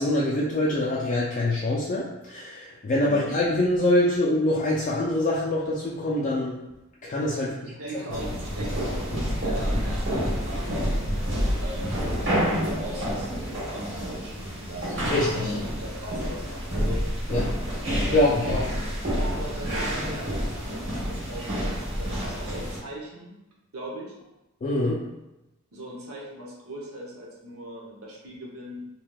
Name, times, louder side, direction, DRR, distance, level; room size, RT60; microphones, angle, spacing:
voice 1, 0.0-6.6 7.0-7.7 15.1-15.5 17.3-17.4 18.0-18.6 24.6-25.0, left 1 dB, 35° left, -5 dB, 0.3 m, -24 dB
voice 2, 7.6-10.9 11.6-17.0 18.1-18.4 19.2-23.4 23.7-24.1 25.7-28.9, right 1 dB, 80° right, -3 dB, 0.8 m, -39 dB
sound 1, 8.1-22.8, equal, 60° right, 1.4 m, -28 dB
3.2 x 2.8 x 2.3 m, 0.96 s
head